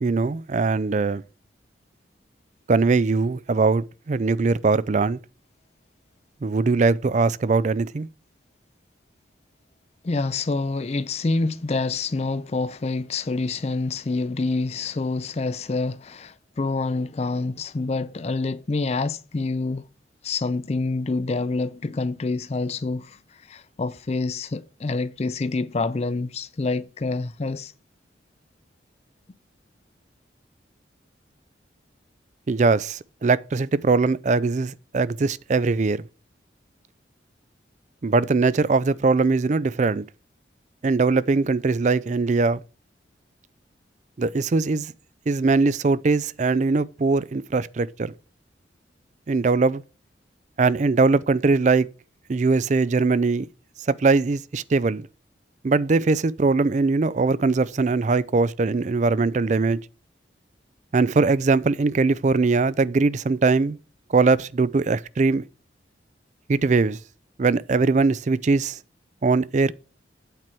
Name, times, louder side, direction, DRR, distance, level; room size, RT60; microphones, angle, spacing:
voice 1, 0.0-1.2 2.7-5.2 6.4-8.1 32.5-36.0 38.0-40.0 40.8-42.6 44.2-44.9 45.3-48.1 49.3-49.8 50.6-51.9 52.3-53.5 53.9-55.1 55.6-59.8 60.9-63.8 64.1-65.4 66.5-67.0 67.4-68.8 69.2-69.7, right 4 dB, 40° right, 0.4 m, -21 dB
voice 2, 10.0-19.9 20.2-23.2 23.5-27.7, left 3 dB, 35° left, 0.4 m, -27 dB
8.9 x 4.5 x 7.5 m
head